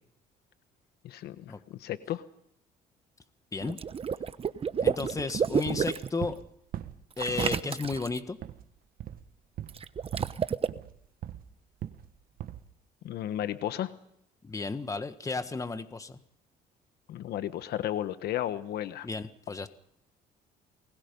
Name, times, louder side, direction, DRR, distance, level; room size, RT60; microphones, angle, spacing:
voice 1, 1.0-2.2 13.0-13.9 17.1-19.1, left 12 dB, 70° left, 12 dB, 1.3 m, -33 dB
Water / Liquid, 3.6-6.1 7.2-8.2 9.7-10.7, right 7 dB, 35° right, 1.0 m, -30 dB
voice 2, 4.8-6.3 7.2-8.4 14.4-16.2 19.0-19.7, left 4 dB, 20° left, 10 dB, 1.6 m, -33 dB
sound 1, 5.7-6.5 6.7-7.5 7.8-8.1 8.4-8.6 9.0-9.3 9.6-9.9 10.1-10.4 10.7-11.5 11.8-12.1 12.4-12.7, right 11 dB, 60° right, 1.4 m, -40 dB
29.0 x 21.0 x 5.4 m, 0.72 s
cardioid pair, 110°, 17 cm